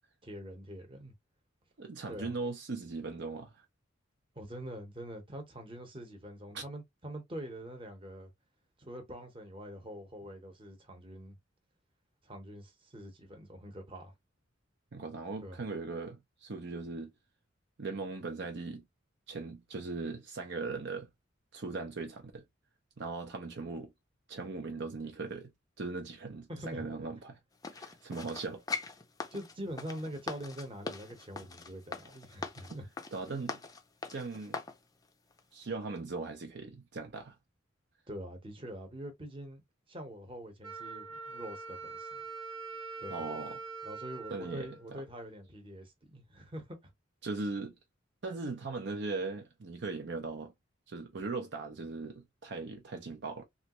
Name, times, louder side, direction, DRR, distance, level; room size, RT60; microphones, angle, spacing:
voice 1, 0.2-1.1 2.1-2.3 4.3-8.3 8.8-11.4 12.2-14.1 15.4-15.6 26.5-26.9 29.3-32.9 38.1-42.2 43.0-43.2 43.8-46.9, equal, 25° right, 1.0 m, -44 dB
voice 2, 1.8-3.6 6.5-6.6 14.9-17.1 17.8-18.8 19.3-21.1 21.5-22.4 23.0-23.9 24.3-25.5 25.8-27.3 27.7-28.6 32.7-32.8 33.1-33.6 34.1-34.6 35.5-37.4 43.1-43.6 44.3-45.0 47.2-47.7 48.2-50.5 50.9-53.4, right 3 dB, 60° right, 0.6 m, -39 dB
sound 1, 27.6-34.8 35.3-35.4, left 4 dB, 20° left, 0.4 m, -41 dB
Wind instrument woodwind instrument, 40.6-45.4, right 4 dB, 90° right, 1.1 m, -44 dB
3.1 x 2.4 x 2.9 m
head